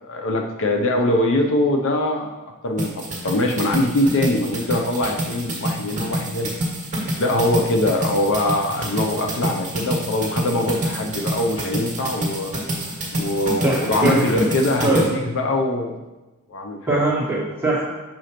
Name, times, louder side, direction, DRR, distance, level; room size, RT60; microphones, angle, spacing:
voice 1, 0.0-6.5 7.2-12.5 13.1-16.0 16.5-17.0, left 1 dB, 60° left, 2 dB, 0.6 m, -22 dB
sound 1, 2.8-15.1, right 1 dB, 35° right, 1.8 m, -27 dB
voice 2, 13.6-14.2 14.8-15.0 16.9-17.8, right 2 dB, 10° right, -8 dB, 1.7 m, -21 dB
7.0 x 5.0 x 3.0 m, 1.1 s
head